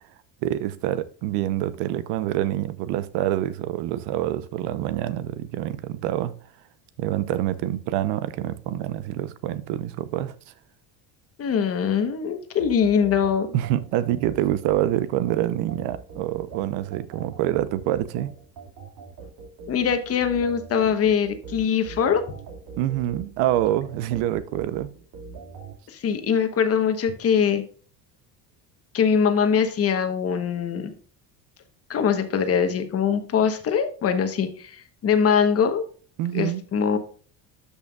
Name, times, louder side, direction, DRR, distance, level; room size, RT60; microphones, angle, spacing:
voice 1, 0.4-6.4 7.0-10.3 13.5-18.3 22.8-24.9 36.2-36.6, right 13 dB, 90° right, 0.8 m, -26 dB
voice 2, 11.4-13.5 19.7-22.2 25.9-27.6 28.9-30.9 31.9-35.8 36.3-37.0, left 7 dB, 35° left, 1.1 m, -22 dB
sound 1, 12.6-25.8, right 4 dB, 65° right, 2.4 m, -42 dB
12.5 x 5.6 x 2.4 m
cardioid pair, 150°, 41 cm